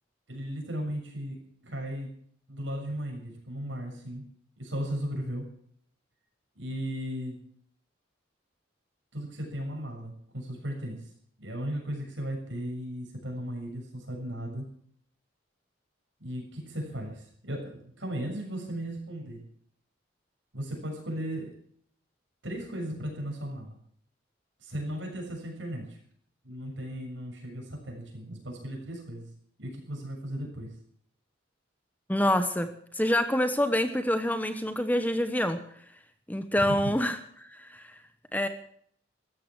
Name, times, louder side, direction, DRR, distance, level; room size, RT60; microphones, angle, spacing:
voice 1, 0.3-2.2 2.5-4.3 4.6-5.5 6.5-7.5 9.1-11.0 11.4-14.7 16.2-19.4 20.5-21.6 22.4-23.7 24.6-26.0 26.4-29.3 29.6-30.7 36.6-36.9, equal, 70° right, 2 dB, 6.8 m, -36 dB
voice 2, 32.1-32.7 32.9-35.6 36.3-37.9 38.3-38.5, left 1 dB, 10° left, 9 dB, 1.1 m, -26 dB
15.5 x 14.0 x 6.3 m, 0.62 s
head